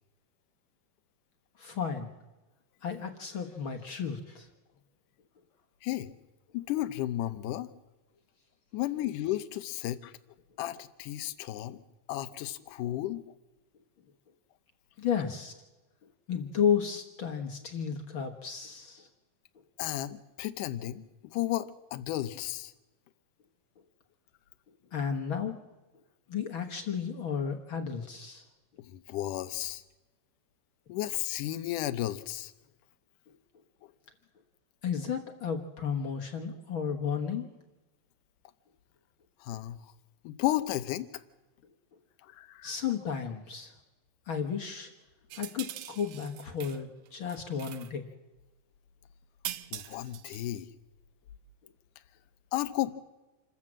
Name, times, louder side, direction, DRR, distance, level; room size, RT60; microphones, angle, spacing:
voice 1, 1.6-2.1 2.8-4.5 15.0-15.5 16.3-19.1 24.9-25.7 26.3-28.5 33.3-33.4 34.8-37.5 42.6-43.7 44.3-44.9 45.3-48.1, left 7 dB, 55° left, 4 dB, 1.5 m, -33 dB
voice 2, 6.5-7.7 8.7-10.1 10.6-11.8 12.1-13.3 19.8-22.7 28.9-29.8 30.9-32.5 33.8-33.9 39.4-39.9 40.2-41.2 42.2-42.7 49.7-50.7 52.5-52.9, left 14 dB, 75° left, 13 dB, 2.3 m, -33 dB
sound 1, 45.3-46.8 47.1-47.9 49.4-50.6, right 12 dB, 75° right, 1.6 m, -42 dB
27.5 x 14.0 x 7.5 m, 1.1 s
omnidirectional pair, 4.0 m